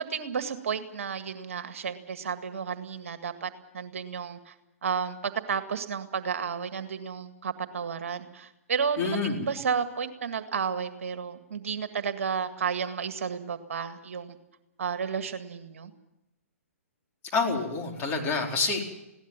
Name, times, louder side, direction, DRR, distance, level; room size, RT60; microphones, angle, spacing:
voice 1, 0.0-4.5 4.8-14.4 14.8-15.9, right 6 dB, 65° right, 9 dB, 1.9 m, -32 dB
voice 2, 9.0-9.4 17.3-18.8, left 4 dB, 25° left, 0 dB, 4.6 m, -27 dB
21.0 x 17.5 x 7.5 m, 0.91 s
figure-of-eight pair, 125°, 8 cm